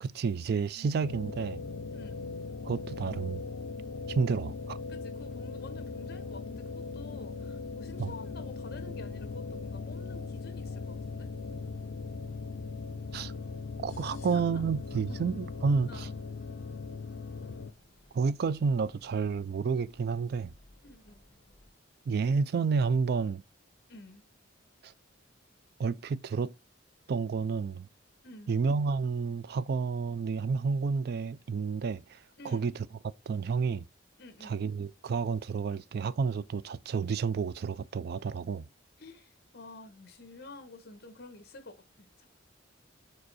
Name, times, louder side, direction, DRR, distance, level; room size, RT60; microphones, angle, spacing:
voice 1, 0.0-1.6 2.6-3.4 4.1-4.8 8.0-8.1 13.1-13.3 13.8-16.1 18.1-20.5 22.1-23.4 24.8-24.9 25.8-26.5 27.1-27.9 28.5-32.2 32.4-32.7 33.3-33.8 34.4-38.7, right 5 dB, 55° right, 0.3 m, -30 dB
sound 1, 1.0-17.7, left 4 dB, 75° left, 0.5 m, -39 dB
voice 2, 1.9-2.3 4.9-11.3 14.0-14.6 14.9-15.3 15.9-16.1 20.8-21.2 23.9-24.2 28.2-28.6 32.4-32.7 34.2-34.6 39.0-42.3, left 2 dB, 55° left, 1.1 m, -49 dB
sound 2, 6.8-21.7, left 1 dB, 35° left, 1.7 m, -60 dB
5.3 x 4.5 x 4.1 m
head